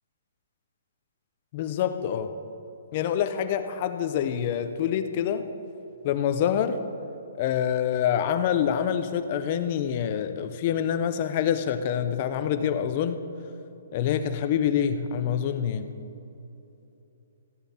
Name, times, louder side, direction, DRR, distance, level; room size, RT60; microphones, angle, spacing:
voice 1, 1.5-2.3 2.9-5.5 6.0-6.8 7.4-13.2 13.9-16.0, left 9 dB, 30° left, 10 dB, 0.6 m, -26 dB
14.5 x 10.5 x 4.3 m, 3.0 s
hypercardioid pair, 175°, 0 cm